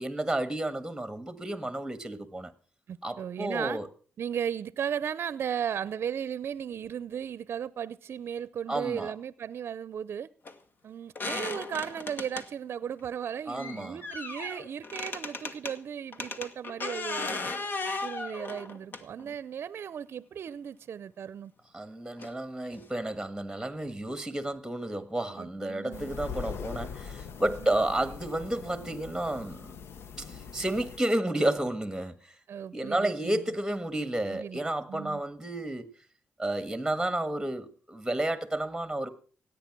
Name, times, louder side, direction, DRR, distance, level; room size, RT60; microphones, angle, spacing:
voice 1, 0.0-2.5 3.0-3.9 8.7-9.1 13.5-14.0 21.7-29.7 30.2-32.4 32.7-35.9 36.4-39.1, right 1 dB, 5° right, 1.5 m, -31 dB
voice 2, 2.9-3.8 4.2-10.3 10.8-17.5 18.0-21.5 25.4-26.2 27.6-27.8 32.5-33.3 34.3-34.6 34.9-35.2, right 8 dB, 65° right, 0.6 m, -36 dB
sound 1, 10.5-10.6 11.2-12.5 13.5-15.8 16.1-19.3 20.5-20.6 22.2-22.3 22.7-22.8 23.1-23.2, left 3 dB, 50° left, 1.6 m, -36 dB
sound 2, 25.9-31.0, left 6 dB, 70° left, 0.9 m, -41 dB
17.0 x 8.9 x 6.0 m
cardioid pair, 70°, 4 cm